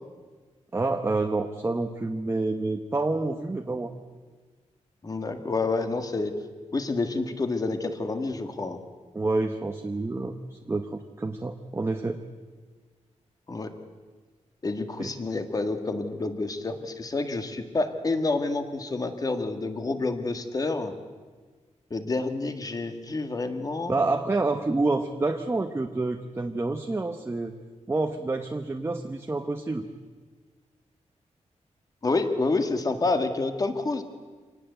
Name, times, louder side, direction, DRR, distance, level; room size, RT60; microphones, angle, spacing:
voice 1, 0.7-3.9 9.1-10.9 11.2-12.2 15.0-15.1 23.9-27.5 27.9-29.8, right 3 dB, 20° right, 5 dB, 1.0 m, -28 dB
voice 2, 5.0-6.3 6.7-8.8 13.5-13.7 14.6-20.9 21.9-24.0 32.0-34.0, left 3 dB, 30° left, 7 dB, 1.8 m, -28 dB
26.0 x 19.0 x 8.1 m, 1.4 s
wide cardioid pair, 165°, 12 cm